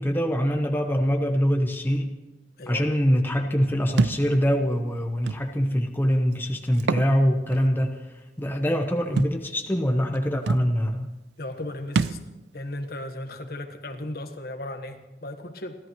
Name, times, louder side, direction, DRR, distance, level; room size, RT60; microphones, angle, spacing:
voice 1, 0.0-2.1 2.7-11.1, equal, 10° left, 3 dB, 0.9 m, -24 dB
Thump thud, 4.0-4.2 5.3-5.4 6.7-7.1 7.5-7.6 9.2-9.4 10.1-10.2 10.5-10.7 11.9-12.2, right 4 dB, 75° right, 0.4 m, -25 dB
voice 2, 11.4-12.2 12.5-15.7, left 1 dB, 60° left, 6 dB, 1.4 m, -35 dB
30.0 x 13.5 x 3.1 m, 1.1 s
head